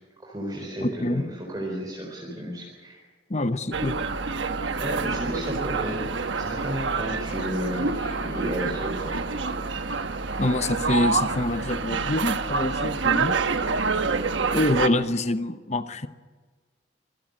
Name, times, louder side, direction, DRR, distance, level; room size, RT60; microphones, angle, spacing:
voice 1, 0.2-3.0 4.7-9.2, equal, 20° right, 4.2 m, -33 dB
voice 2, 0.8-1.2 3.3-4.0 10.4-13.4 14.5-16.1, left 2 dB, 35° left, 0.9 m, -25 dB
sound 1, 3.7-14.9, right 4 dB, 85° right, 1.2 m, -27 dB
26.0 x 16.5 x 6.7 m
head